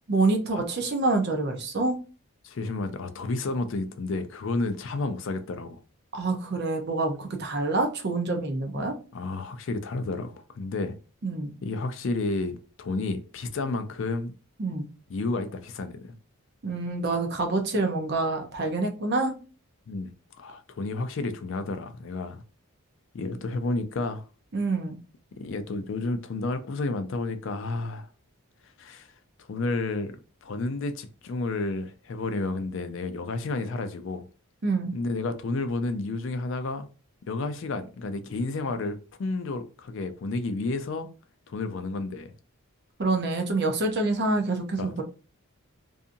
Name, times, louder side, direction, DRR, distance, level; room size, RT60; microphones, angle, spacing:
voice 1, 0.1-2.0 6.1-8.9 11.2-11.6 14.6-14.9 16.6-19.3 24.5-25.0 34.6-34.9 43.0-45.0, right 3 dB, 50° right, 0.6 m, -26 dB
voice 2, 2.4-5.8 9.1-11.0 11.6-14.3 15.1-16.2 19.9-22.4 23.1-24.2 25.4-28.1 28.8-29.1 29.5-34.3 34.9-36.9 37.3-41.1 41.5-42.3 44.8-44.9, left 3 dB, 55° left, 0.4 m, -31 dB
2.7 x 2.5 x 2.5 m
head